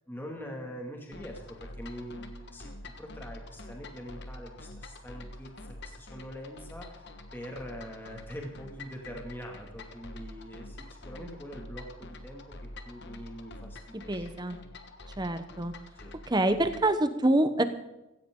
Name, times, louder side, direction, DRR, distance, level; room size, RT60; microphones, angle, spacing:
voice 1, 0.1-12.5 12.8-14.3 16.0-16.1, equal, 10° left, 1 dB, 2.3 m, -43 dB
sound 1, 1.1-17.0, left 1 dB, 50° left, 1.4 m, -46 dB
voice 2, 14.1-14.6 15.2-15.7 16.3-17.6, right 1 dB, 20° right, 10 dB, 0.9 m, -26 dB
16.5 x 16.0 x 3.8 m, 0.97 s
head